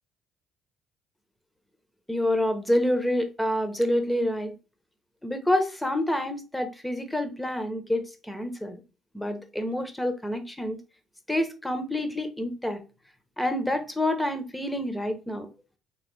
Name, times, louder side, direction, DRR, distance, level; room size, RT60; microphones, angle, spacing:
voice 1, 2.1-4.5 5.2-8.8 9.1-10.8 11.3-12.8 13.4-15.5, left 1 dB, 5° left, 1.0 m, -27 dB
3.5 x 3.0 x 3.3 m
hypercardioid pair, 60°, 0 cm